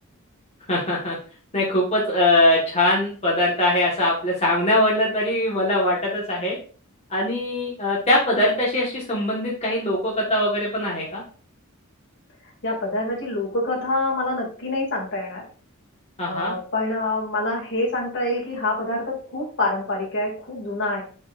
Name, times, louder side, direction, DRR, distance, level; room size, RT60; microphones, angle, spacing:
voice 1, 0.7-1.2 1.5-6.6 7.1-11.2 16.2-16.5, left 1 dB, 30° left, -4 dB, 1.5 m, -22 dB
voice 2, 12.6-15.4 16.3-21.0, left 2 dB, 60° left, -1 dB, 2.4 m, -26 dB
9.7 x 4.5 x 2.5 m, 0.40 s
head